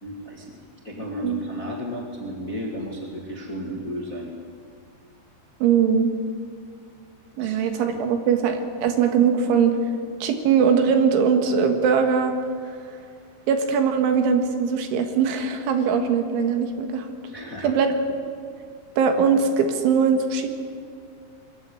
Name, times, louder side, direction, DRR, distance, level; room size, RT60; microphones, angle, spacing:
voice 1, 0.0-4.3 7.4-7.6 17.3-17.7, equal, 30° left, -1 dB, 1.5 m, -33 dB
voice 2, 5.6-6.1 7.4-9.8 10.2-12.3 13.5-17.1 17.6-17.9 19.0-20.5, right 6 dB, 80° right, 6 dB, 4.0 m, -21 dB
22.0 x 14.5 x 9.9 m, 2.2 s
omnidirectional pair, 5.5 m